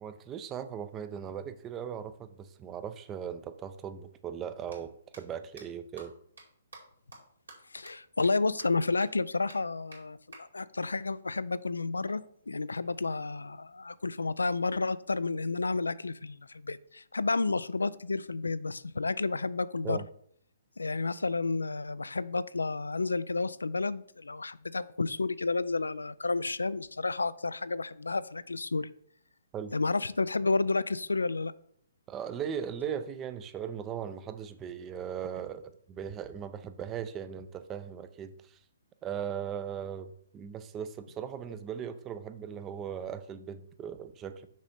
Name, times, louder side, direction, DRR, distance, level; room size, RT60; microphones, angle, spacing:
voice 1, 0.0-6.1 19.8-20.1 29.5-29.7 32.1-38.6 39.0-44.5, right 8 dB, 20° right, 11 dB, 0.5 m, -38 dB
sound 1, 4.7-4.8 5.1-5.2 5.6-5.7 6.0-6.1 6.4-6.5 6.7-6.8 7.1-7.2 7.5-7.6 7.9-8.0 8.2-8.3 8.6-8.7 9.0-9.1 9.5-9.6 9.9-10.0 10.3-10.4 12.1-13.1, right 3 dB, 80° right, 2.5 m, -51 dB
voice 2, 7.7-20.0 20.8-28.9 29.7-31.5, left 3 dB, 80° left, 16 dB, 0.3 m, -31 dB
6.2 x 5.1 x 4.2 m, 0.65 s
figure-of-eight pair, 130°, 0 cm